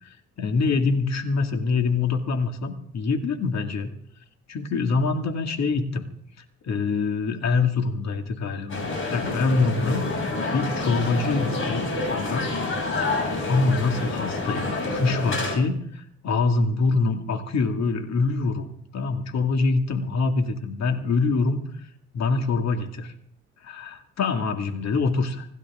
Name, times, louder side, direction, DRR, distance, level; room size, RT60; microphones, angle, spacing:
voice 1, 0.0-3.9 4.5-6.0 6.6-11.8 12.1-12.5 13.5-21.6 22.1-23.1 23.6-25.5, left 4 dB, 60° left, 5 dB, 2.2 m, -25 dB
sound 1, 8.7-15.5, left 3 dB, 40° left, 7.2 m, -28 dB
26.0 x 12.0 x 3.7 m, 0.67 s
cardioid pair, 90°, 30 cm